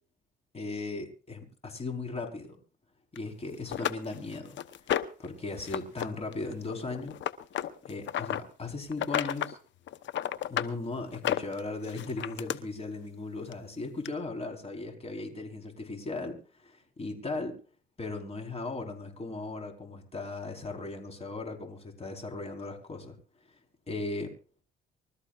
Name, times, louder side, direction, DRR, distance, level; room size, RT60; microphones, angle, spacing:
voice 1, 0.5-2.6 3.1-4.6 5.2-7.1 7.8-9.6 10.5-17.6 18.0-23.2 23.9-24.3, left 3 dB, 30° left, 3 dB, 4.6 m, -37 dB
sound 1, 3.2-3.3 3.7-5.3 5.6-6.1 6.3-8.4 8.9-9.5 9.9-10.7 11.1-12.6 13.5-13.6 14.1-14.2, left 11 dB, 65° left, 1.1 m, -32 dB
25.5 x 13.5 x 2.5 m, 0.38 s
supercardioid pair, 75°, 20 cm